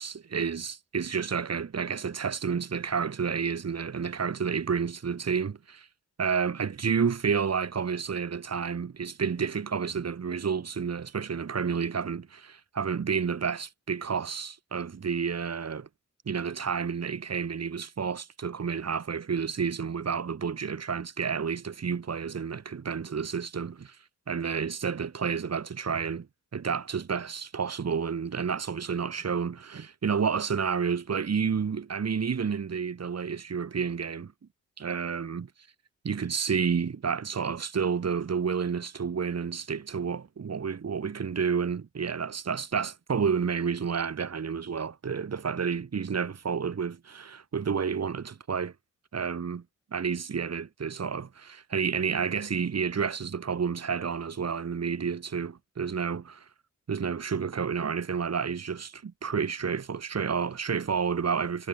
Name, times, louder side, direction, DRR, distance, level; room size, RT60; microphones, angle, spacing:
voice 1, 0.0-5.9 6.2-15.9 16.3-24.0 24.3-26.3 26.5-34.3 34.8-35.5 36.0-48.7 49.1-49.6 49.9-56.4 56.9-61.7, right 6 dB, 55° right, 3.9 m, -30 dB
wide cardioid pair, 100°, 31 cm